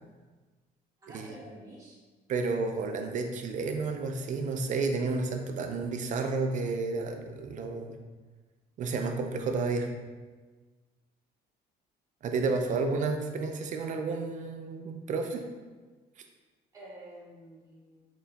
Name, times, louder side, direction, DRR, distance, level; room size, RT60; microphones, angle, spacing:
voice 1, 1.0-2.0 12.3-12.5 16.7-18.1, right 1 dB, 20° right, -7 dB, 1.3 m, -49 dB
voice 2, 2.3-8.0 8.8-9.9 12.2-15.4, right 4 dB, 50° right, 5 dB, 0.5 m, -31 dB
4.3 x 4.0 x 2.2 m, 1.3 s
cardioid pair, 110°, 17 cm